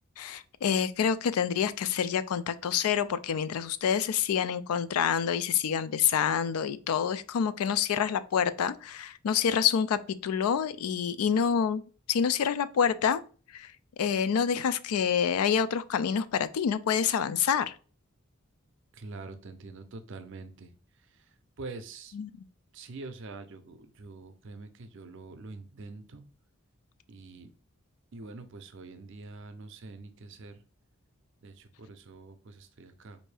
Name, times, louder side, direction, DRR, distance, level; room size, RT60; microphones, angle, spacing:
voice 1, 0.2-11.8 12.1-13.2 13.5-13.7 14.0-17.7 22.1-22.3, left 7 dB, 85° left, 0.3 m, -27 dB
voice 2, 19.0-20.7 21.6-22.2 22.7-26.2 27.1-27.5 28.1-30.6 31.4-33.2, right 3 dB, 55° right, 0.5 m, -45 dB
4.3 x 2.6 x 3.3 m
head